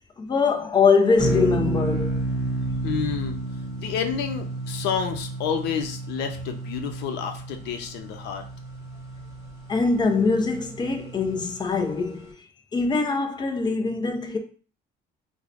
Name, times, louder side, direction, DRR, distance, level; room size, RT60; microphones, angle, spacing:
voice 1, 0.2-2.2 9.7-12.3 12.7-14.4, left 4 dB, 25° left, 0.6 m, -23 dB
sound 1, 1.2-11.7, right 2 dB, 15° right, 1.0 m, -32 dB
voice 2, 2.8-3.4 3.8-8.4, left 7 dB, 85° left, 0.6 m, -29 dB
4.6 x 2.2 x 2.5 m
cardioid pair, 110°, 17 cm